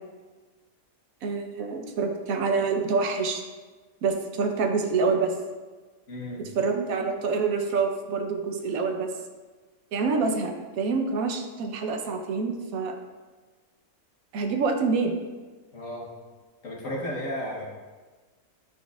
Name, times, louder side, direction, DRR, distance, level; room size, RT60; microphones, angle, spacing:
voice 1, 1.2-3.4 4.0-5.3 6.6-9.1 9.9-10.5 10.8-12.9 14.3-15.1, right 4 dB, 65° right, 4 dB, 1.0 m, -26 dB
voice 2, 6.1-6.4 15.7-16.1 16.6-17.7, equal, 55° left, -2 dB, 1.4 m, -33 dB
9.1 x 4.5 x 2.3 m, 1.3 s
omnidirectional pair, 1.8 m